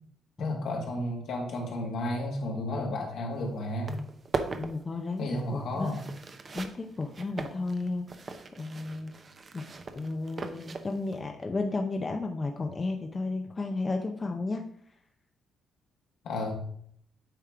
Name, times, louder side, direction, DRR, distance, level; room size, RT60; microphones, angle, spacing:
voice 1, 0.4-4.0 5.2-6.0 16.2-16.5, left 1 dB, 70° left, 0 dB, 2.0 m, -32 dB
sound 1, 3.3-3.4 3.7-11.2, right 4 dB, 40° right, 0.7 m, -39 dB
voice 2, 4.6-5.9 6.5-8.1 8.6-9.1 9.5-9.7 9.9-14.6, left 3 dB, 30° left, 4 dB, 0.6 m, -33 dB
8.9 x 3.6 x 4.7 m, 0.67 s
cardioid pair, 90°, 0 cm